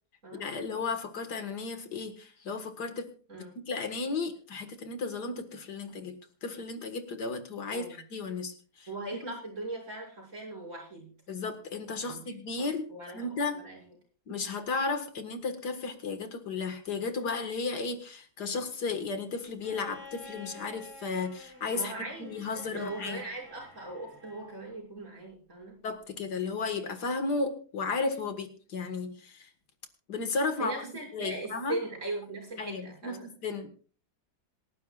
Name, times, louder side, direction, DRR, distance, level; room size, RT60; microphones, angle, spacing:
voice 1, 0.3-8.9 9.2-9.3 11.3-12.9 13.1-13.6 14.3-21.9 22.2-23.2 25.8-29.5 30.1-31.8 32.6-33.7, left 4 dB, 75° left, 7 dB, 2.2 m, -34 dB
voice 2, 7.7-8.0 8.9-11.1 12.0-12.2 12.6-12.7 12.9-13.3 13.5-13.8 21.7-22.4 22.7-25.8 30.6-33.3, right 2 dB, 45° right, -3 dB, 6.7 m, -39 dB
Bowed string instrument, 19.6-24.7 26.1-26.2, left 2 dB, 5° right, 6.0 m, -50 dB
27.5 x 11.5 x 2.4 m, 0.41 s
omnidirectional pair, 1.8 m